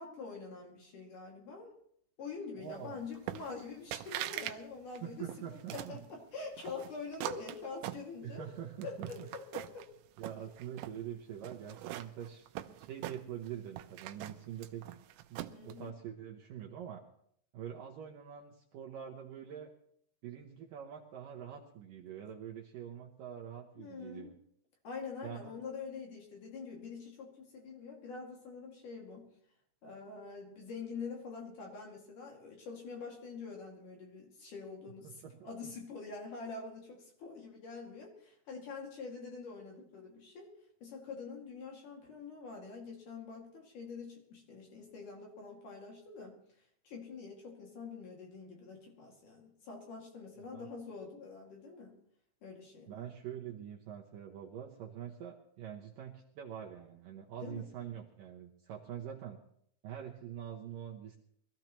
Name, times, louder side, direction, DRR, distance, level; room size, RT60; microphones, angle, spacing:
voice 1, 0.0-1.7 2.2-8.5 8.8-9.9 15.5-15.9 22.1-22.2 23.8-24.4 24.8-29.3 29.8-40.5 40.8-46.4 46.8-52.0 52.4-53.1 57.4-57.7, left 4 dB, 50° left, 0 dB, 3.5 m, -45 dB
voice 2, 2.6-3.0 5.0-6.0 8.2-9.3 10.2-14.8 15.3-17.0 17.5-19.7 20.2-24.3 25.2-25.5 35.0-35.3 35.6-35.7 50.5-50.7 52.9-59.4 59.8-61.2, right 9 dB, 70° right, 0 dB, 2.2 m, -45 dB
sound 1, 3.3-3.7 3.9-4.6 4.9-6.0 6.6-8.5 8.8-9.9 10.2-11.0 11.4-13.5 13.8-15.7, right 14 dB, 90° right, 3.0 m, -42 dB
23.0 x 15.0 x 3.1 m, 0.68 s
omnidirectional pair, 5.0 m